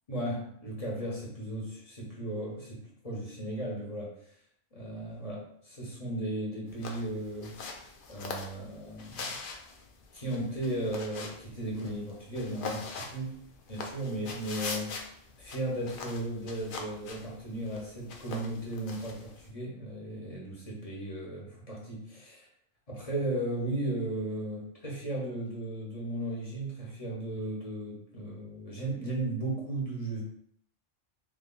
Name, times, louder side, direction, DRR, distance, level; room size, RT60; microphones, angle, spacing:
voice 1, 0.1-4.1 4.7-7.6 8.1-9.3 10.1-13.3 13.7-15.0 15.4-22.5 22.9-30.2, right 1 dB, 35° left, -4 dB, 1.0 m, -35 dB
sound 1, 6.7-19.5, left 4 dB, 60° left, 0.6 m, -43 dB
3.2 x 2.3 x 3.8 m, 0.66 s
omnidirectional pair, 1.2 m